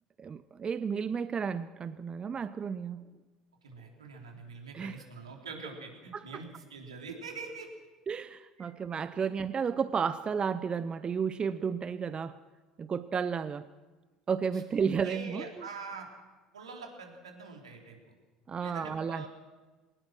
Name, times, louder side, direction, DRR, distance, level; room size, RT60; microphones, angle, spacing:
voice 1, 0.2-3.0 4.7-5.0 6.1-6.2 8.1-12.4 12.8-13.7 14.3-15.4 18.5-19.3, right 6 dB, 30° right, 14 dB, 0.7 m, -32 dB
voice 2, 3.6-7.7 14.5-14.6 15.0-16.1 16.5-18.1 18.6-19.3, right 4 dB, 85° right, 1 dB, 3.6 m, -44 dB
22.5 x 19.5 x 6.2 m, 1.3 s
figure-of-eight pair, 65°, 3 cm